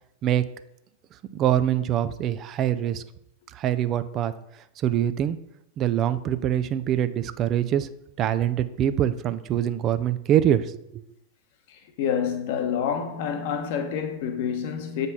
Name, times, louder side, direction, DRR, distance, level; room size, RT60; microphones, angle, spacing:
voice 1, 1.3-3.0 3.5-4.3 4.8-5.4 5.8-7.9 8.2-11.0, right 10 dB, 35° right, 0.5 m, -24 dB
voice 2, 11.7-15.1, left 8 dB, 50° left, 1.1 m, -28 dB
8.2 x 5.3 x 4.1 m
figure-of-eight pair, 90°, 0 cm